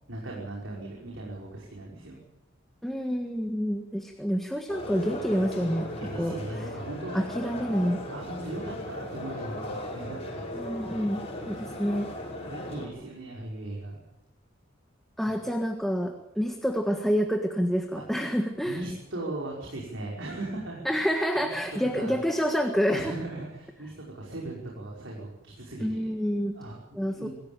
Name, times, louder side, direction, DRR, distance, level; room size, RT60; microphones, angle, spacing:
voice 1, 0.1-2.2 6.0-7.2 8.1-10.5 11.4-11.9 12.3-14.0 18.7-20.8 21.3-21.5 21.9-22.2 22.9-26.1 26.5-27.3, right 2 dB, 70° right, -3 dB, 5.6 m, -38 dB
voice 2, 2.8-5.9 6.1-6.4 7.1-8.0 10.5-12.1 15.2-18.8 20.9-23.1 25.8-26.5 26.9-27.3, equal, ahead, 4 dB, 1.6 m, -28 dB
sound 1, 4.7-12.9, left 1 dB, 30° left, 5.9 m, -37 dB
25.5 x 15.5 x 9.0 m, 0.91 s
head